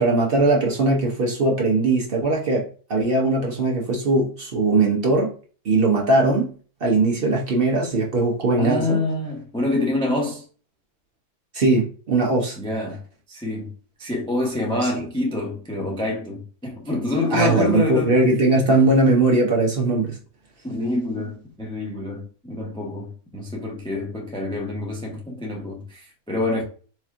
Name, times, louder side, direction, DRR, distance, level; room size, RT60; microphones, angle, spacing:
voice 1, 0.0-2.6 2.9-5.3 5.6-6.5 6.8-9.0 11.5-12.6 14.8-15.0 17.3-20.1, right 2 dB, 50° right, 0.9 m, -20 dB
voice 2, 8.6-10.4 12.6-13.0 13.3-13.7 14.0-18.1 20.6-26.6, left 2 dB, 5° left, 0.4 m, -26 dB
4.2 x 2.9 x 2.4 m
omnidirectional pair, 1.5 m